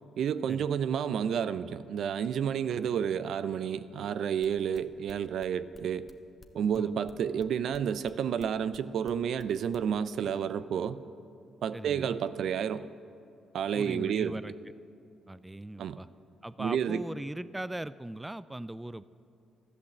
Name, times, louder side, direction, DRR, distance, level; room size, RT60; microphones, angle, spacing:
voice 1, 0.2-6.1 6.5-11.0 11.6-12.9 13.5-14.4 15.8-16.0 16.6-17.0, right 8 dB, 70° right, 0.5 m, -30 dB
sound 1, 4.4-9.9, left 3 dB, 25° left, 1.1 m, -54 dB
voice 2, 11.7-12.2 13.7-14.5 15.3-16.1 16.4-19.0, right 1 dB, 10° right, 0.3 m, -39 dB
13.5 x 11.5 x 7.3 m
cardioid pair, 90°, 0 cm